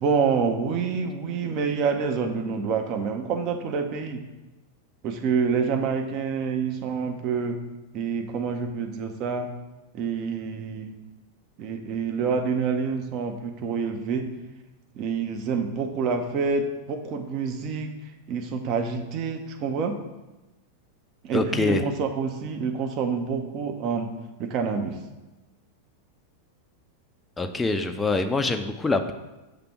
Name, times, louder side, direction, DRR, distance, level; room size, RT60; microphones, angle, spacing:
voice 1, 0.0-4.2 5.0-7.6 7.9-9.5 9.9-10.9 11.6-14.2 14.9-17.9 18.3-20.0 21.2-24.1 24.4-25.0, right 5 dB, 40° right, 5 dB, 0.8 m, -27 dB
voice 2, 21.3-21.8 27.4-29.1, left 3 dB, 10° left, 6 dB, 0.5 m, -24 dB
6.8 x 3.3 x 6.0 m, 1.1 s
figure-of-eight pair, 90°, 0 cm